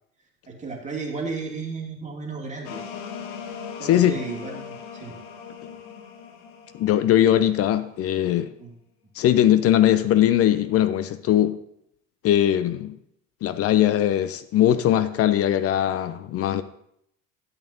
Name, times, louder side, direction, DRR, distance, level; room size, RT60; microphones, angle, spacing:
voice 1, 0.5-2.8 3.8-5.1 8.6-8.7, right 4 dB, 15° right, 2.4 m, -34 dB
sound 1, 2.6-8.1, left 6 dB, 60° left, 1.2 m, -39 dB
voice 2, 3.8-4.1 6.7-8.5 9.2-11.6 12.2-13.0 13.4-16.6, left 11 dB, 35° left, 0.5 m, -20 dB
12.0 x 8.1 x 2.8 m
figure-of-eight pair, 65°, 41 cm